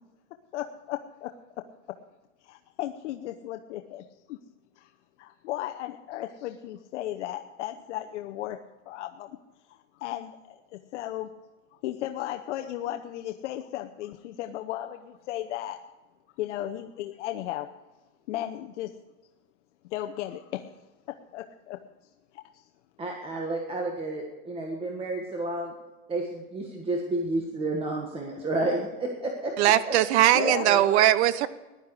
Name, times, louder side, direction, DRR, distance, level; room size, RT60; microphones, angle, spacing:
voice 1, 0.5-2.0 2.4-4.4 4.8-4.9 5.2-9.3 9.7-11.3 11.8-15.8 16.4-17.7 18.3-18.9 19.9-20.8 21.1-21.8 22.3-22.7 30.3-30.7, left 13 dB, 65° left, 0.9 m, -35 dB
voice 2, 23.0-25.7 26.1-29.5 29.8-29.9 30.3-31.0, right 2 dB, 15° right, 1.5 m, -31 dB
voice 3, 29.6-31.5, right 13 dB, 55° right, 0.9 m, -20 dB
15.5 x 11.5 x 4.8 m
supercardioid pair, 145°, 39 cm